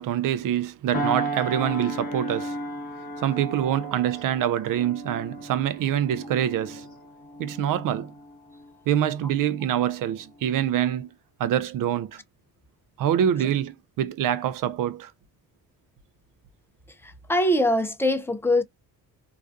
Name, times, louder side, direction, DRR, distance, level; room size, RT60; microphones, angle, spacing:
voice 1, 0.0-2.6 3.2-6.9 7.4-8.1 8.9-11.1 11.4-12.2 13.0-15.1, right 10 dB, 60° right, 0.5 m, -25 dB
sound 1, 0.9-9.8 10.3-10.5, right 1 dB, 25° left, 1.3 m, -35 dB
voice 2, 17.0-18.6, left 1 dB, 5° left, 0.4 m, -23 dB
2.4 x 2.2 x 2.5 m
cardioid pair, 95°, 37 cm